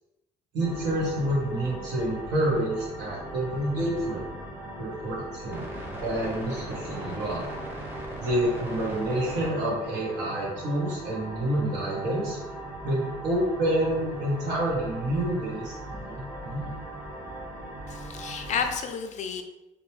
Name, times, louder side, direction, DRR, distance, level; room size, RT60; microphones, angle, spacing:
voice 1, 0.5-4.3 4.8-5.7 6.0-7.5 8.2-12.4 12.8-16.8, right 1 dB, 80° right, -5 dB, 1.4 m, -28 dB
sound 1, 0.6-18.8, right 1 dB, 10° right, 0.7 m, -39 dB
voice 2, 17.9-19.4, left 6 dB, 45° left, 6 dB, 0.4 m, -31 dB
3.0 x 2.1 x 3.1 m, 0.96 s
cardioid pair, 110°, 17 cm